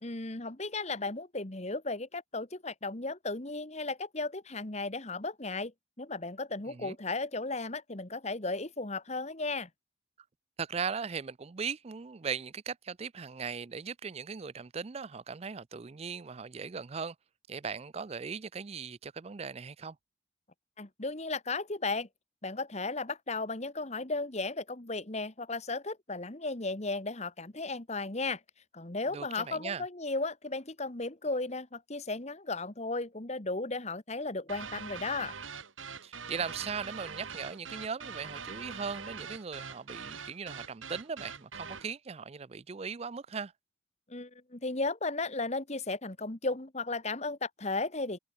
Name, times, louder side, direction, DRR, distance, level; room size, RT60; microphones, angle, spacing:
voice 1, 0.0-5.7 6.0-9.7 20.8-22.1 22.4-28.4 28.7-35.3 44.1-48.2, left 3 dB, 35° left, 1.5 m, -35 dB
voice 2, 10.6-17.1 17.5-20.0 29.1-29.8 36.0-43.5, right 5 dB, 30° right, 0.4 m, -38 dB
sound 1, 34.5-41.9, right 6 dB, 80° right, 3.7 m, -43 dB
head